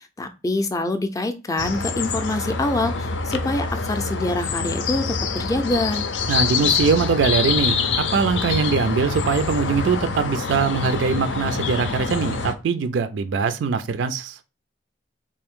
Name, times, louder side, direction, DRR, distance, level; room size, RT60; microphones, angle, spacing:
voice 1, 0.2-5.1 5.3-6.1, left 2 dB, 20° left, 0.4 m, -25 dB
sound 1, 1.6-12.5, left 5 dB, 80° left, 0.5 m, -25 dB
voice 2, 6.3-14.4, right 5 dB, 85° right, 0.4 m, -22 dB
3.4 x 2.6 x 3.5 m
head